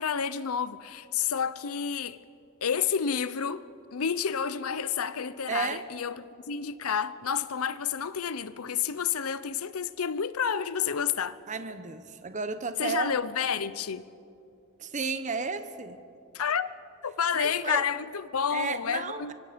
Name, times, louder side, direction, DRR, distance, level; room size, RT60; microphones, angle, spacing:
voice 1, 0.0-2.2 2.6-3.6 3.9-6.2 6.5-11.4 12.8-14.0 16.3-16.7 17.0-19.3, left 7 dB, 90° left, 0.7 m, -30 dB
voice 2, 5.5-5.8 11.5-13.2 14.8-16.0 17.3-17.8 18.5-19.3, right 4 dB, 35° right, 0.9 m, -33 dB
25.5 x 24.0 x 5.2 m
head